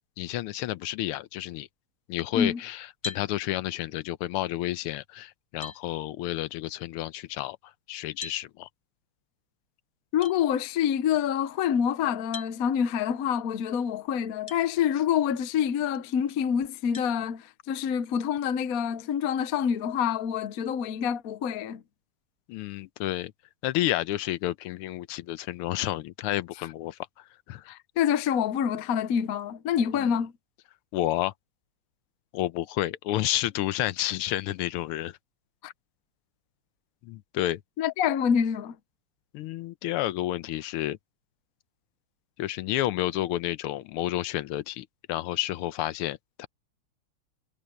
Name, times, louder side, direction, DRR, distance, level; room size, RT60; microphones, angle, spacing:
voice 1, 0.2-1.7 2.1-7.6 7.9-8.7 22.5-23.3 23.6-27.0 27.5-27.6 30.0-30.1 30.9-31.3 32.3-35.2 37.0-37.6 39.3-41.0 42.4-46.5, left 14 dB, 90° left, 1.6 m, -30 dB
sound 1, 3.0-3.3 5.0-5.1 5.6-5.8 8.2-8.4 10.2-10.4 12.3-12.5 14.5-14.6 15.3-15.4 16.9-17.1, left 3 dB, 30° left, 1.1 m, -38 dB
voice 2, 10.1-21.8 26.6-26.7 27.7-30.3 35.6-35.7 37.8-38.8, left 8 dB, 65° left, 0.9 m, -27 dB
omnidirectional pair, 2.4 m